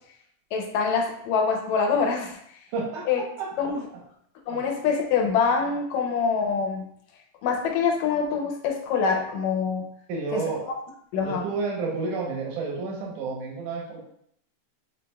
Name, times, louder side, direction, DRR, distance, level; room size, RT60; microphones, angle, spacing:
voice 1, 0.5-2.4 3.1-3.2 3.6-3.9 4.5-6.9 7.4-9.9 10.3-10.4 11.1-11.5, left 5 dB, 75° left, 2 dB, 1.9 m, -25 dB
voice 2, 2.7-3.5 10.1-10.6 11.2-14.0, right 4 dB, 80° right, -2 dB, 2.4 m, -30 dB
7.3 x 3.2 x 2.2 m, 0.70 s
omnidirectional pair, 3.5 m